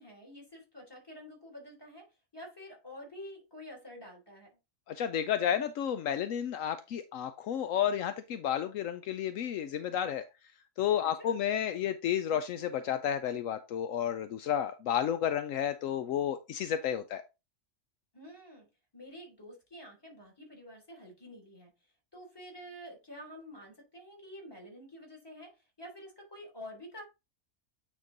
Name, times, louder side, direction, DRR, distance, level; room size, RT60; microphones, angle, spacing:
voice 1, 0.0-2.1 2.3-4.5 11.0-11.4 18.1-18.7 18.9-21.7 22.1-27.0, equal, 15° left, 3.4 m, -48 dB
voice 2, 4.9-10.2 10.8-17.2, left 9 dB, 75° left, 1.0 m, -31 dB
9.1 x 3.8 x 3.9 m
omnidirectional pair, 1.4 m